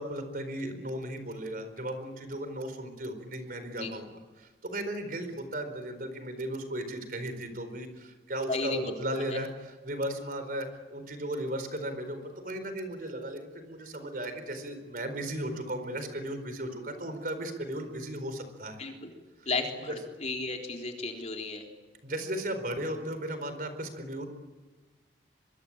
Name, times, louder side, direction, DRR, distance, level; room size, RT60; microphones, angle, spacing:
voice 1, 0.0-4.1 4.4-12.2 12.4-18.8 19.9-20.0 22.0-24.3, right 1 dB, 50° right, 9 dB, 4.3 m, -36 dB
voice 2, 8.5-8.9 9.3-9.4 18.8-19.1 19.5-21.6, left 3 dB, 40° left, 2 dB, 3.8 m, -34 dB
24.0 x 23.5 x 8.8 m, 1.3 s
head